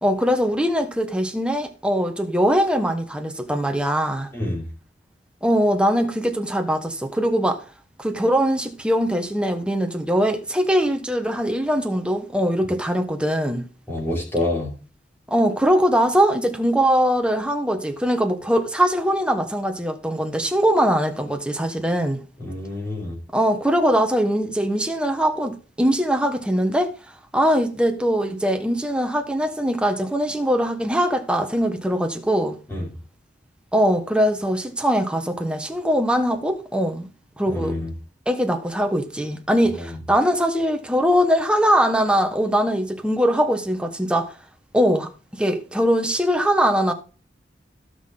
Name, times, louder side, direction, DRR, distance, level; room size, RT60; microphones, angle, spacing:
voice 1, 0.0-4.3 5.4-7.6 8.0-13.7 15.3-22.2 23.3-26.9 27.3-32.6 33.7-37.1 37.4-37.8 38.3-44.3 44.7-46.9, equal, 5° right, 1.2 m, -21 dB
voice 2, 4.3-4.7 13.9-14.7 22.4-23.2 32.7-32.9 37.5-37.9, left 1 dB, 15° left, 5.0 m, -27 dB
17.0 x 6.0 x 3.9 m
head